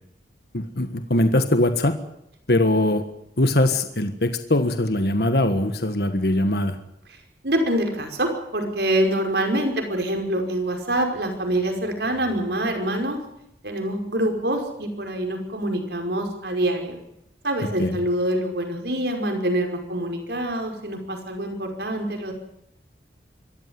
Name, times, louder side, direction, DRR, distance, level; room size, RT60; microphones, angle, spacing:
voice 1, 0.5-1.9 2.5-3.0 3.4-6.8 17.8-18.0, left 1 dB, 60° left, 8 dB, 1.6 m, -21 dB
voice 2, 7.4-13.2 13.6-17.0 17.4-22.3, right 1 dB, 65° right, 4 dB, 5.3 m, -25 dB
25.5 x 14.5 x 9.7 m, 0.79 s
head